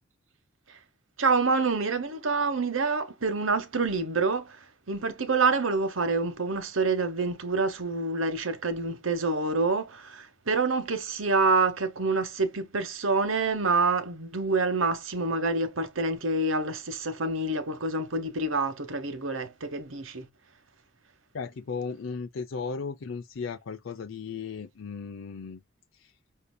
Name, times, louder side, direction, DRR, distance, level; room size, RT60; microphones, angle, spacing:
voice 1, 1.2-4.6 4.9-20.3, right 3 dB, 90° right, 1.2 m, -27 dB
voice 2, 21.3-25.6 26.0-26.1, left 5 dB, 75° left, 0.5 m, -36 dB
6.6 x 2.8 x 2.2 m
head